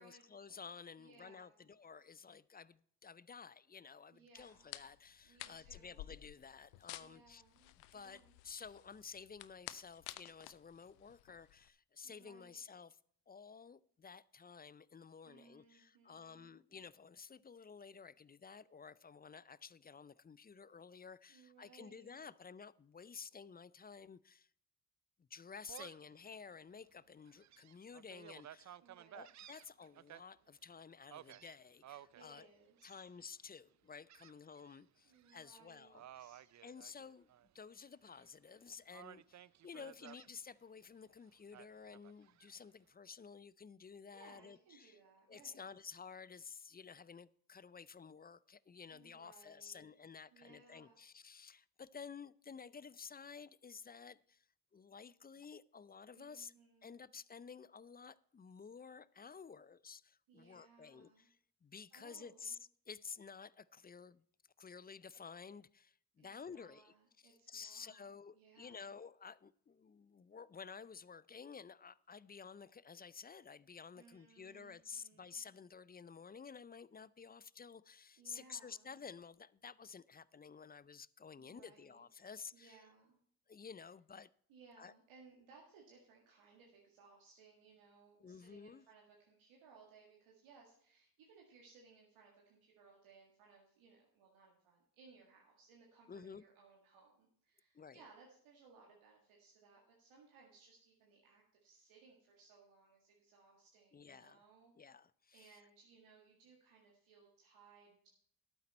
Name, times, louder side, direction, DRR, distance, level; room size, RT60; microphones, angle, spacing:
voice 1, 0.0-7.4 7.9-13.0 13.3-24.5 25.2-28.8 29.1-32.5 32.8-36.3 36.6-37.3 37.5-45.0 45.3-54.5 54.7-56.5 56.8-62.6 62.9-64.2 64.6-82.8 83.5-84.3 84.8-84.9 88.2-88.8 96.1-96.4 97.7-98.0 103.9-104.4 104.8-105.6, left 6 dB, 20° left, 0.4 m, -53 dB
voice 2, 1.0-1.7 4.1-4.8 5.2-6.1 7.0-8.4 12.0-12.6 15.2-16.6 21.3-22.1 28.8-29.3 32.1-33.0 34.2-34.3 35.0-36.4 39.7-40.2 44.1-45.7 48.9-49.9 50.3-51.0 56.1-57.1 60.3-61.3 61.9-62.6 66.2-69.0 73.9-75.5 78.2-79.0 81.4-82.0 82.5-83.2 84.5-104.7 105.3-108.1, right 4 dB, 80° right, 2.0 m, -64 dB
sound 1, 4.4-11.7, left 16 dB, 85° left, 0.6 m, -53 dB
Gull seagull, 25.7-26.1 26.6-26.7 27.2-30.2 31.1-32.2 32.8-33.2 34.1-34.8 35.1-35.4 35.9-37.5 37.8-38.5 38.9-40.3 41.5-42.5, right 12 dB, 40° right, 0.4 m, -56 dB
12.0 x 8.9 x 4.2 m
hypercardioid pair, 40°, 48 cm